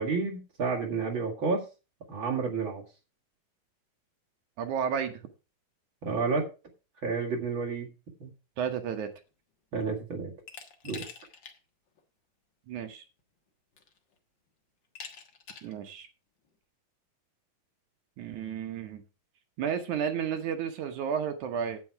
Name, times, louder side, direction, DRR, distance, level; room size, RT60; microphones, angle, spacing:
voice 1, 0.0-1.6 2.1-2.8 6.0-6.5 7.0-7.9 8.2-8.3 9.7-10.3 10.8-11.0, right 4 dB, 40° right, -1 dB, 2.2 m, -30 dB
voice 2, 4.6-5.2 8.6-9.1 12.7-13.0 15.6-16.1 18.2-19.0 19.6-21.8, right 7 dB, 70° right, 6 dB, 2.2 m, -32 dB
Glass, 10.5-11.6 12.0-12.1 13.2-13.3 13.8-14.2 15.0-15.8, left 5 dB, 50° left, 1.4 m, -45 dB
9.3 x 8.4 x 4.7 m, 0.31 s
omnidirectional pair, 4.1 m